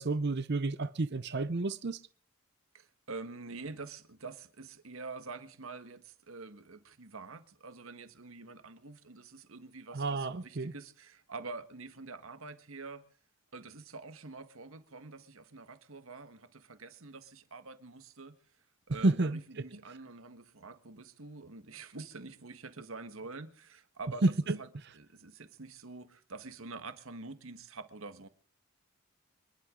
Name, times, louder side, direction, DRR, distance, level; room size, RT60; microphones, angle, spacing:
voice 1, 0.0-2.0 9.9-10.7 19.0-19.4 24.2-24.6, right 2 dB, 50° right, 0.7 m, -30 dB
voice 2, 2.7-13.0 13.5-18.4 18.9-24.2 24.6-24.7 24.9-28.3, right 3 dB, 70° right, 1.5 m, -46 dB
26.5 x 11.5 x 3.8 m
head